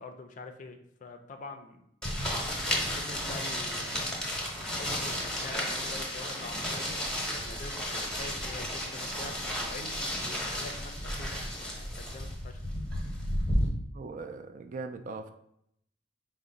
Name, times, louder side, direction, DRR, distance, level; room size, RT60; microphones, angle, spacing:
voice 1, 0.0-1.8 2.6-4.2 4.6-7.0 7.4-12.6, left 3 dB, 40° left, 6 dB, 0.4 m, -45 dB
sound 1, 2.0-13.7, equal, 5° left, 0.8 m, -33 dB
voice 2, 13.9-15.3, right 4 dB, 45° right, 8 dB, 0.3 m, -40 dB
4.7 x 2.1 x 3.9 m, 0.73 s
head